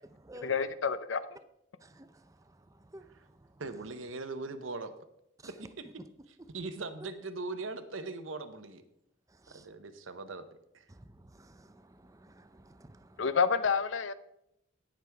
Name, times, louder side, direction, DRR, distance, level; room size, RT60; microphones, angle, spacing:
voice 1, 0.4-1.2 13.2-14.1, left 6 dB, 75° left, 0.6 m, -28 dB
voice 2, 1.8-3.1 9.4-9.7 10.9-13.2, right 1 dB, 15° right, 0.5 m, -53 dB
voice 3, 3.6-4.9 5.4-5.9 6.3-8.8 9.5-10.5 10.7-10.9, right 3 dB, 90° right, 0.9 m, -40 dB
17.5 x 6.2 x 3.5 m
head